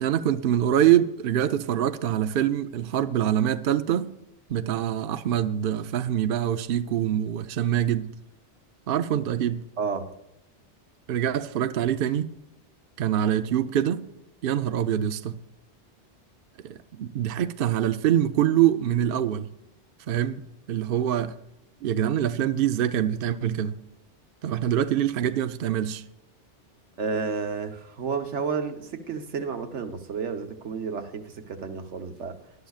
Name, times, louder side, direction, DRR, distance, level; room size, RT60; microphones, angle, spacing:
voice 1, 0.0-4.1 4.5-8.1 8.9-9.6 11.1-12.3 13.0-14.1 14.4-15.4 16.6-19.5 20.1-20.4 20.7-21.3 21.8-23.8 24.4-26.0, right 10 dB, 60° right, 0.7 m, -24 dB
voice 2, 9.8-10.1 27.0-32.4, right 5 dB, 85° right, 1.3 m, -31 dB
19.5 x 11.5 x 2.4 m
omnidirectional pair, 1.2 m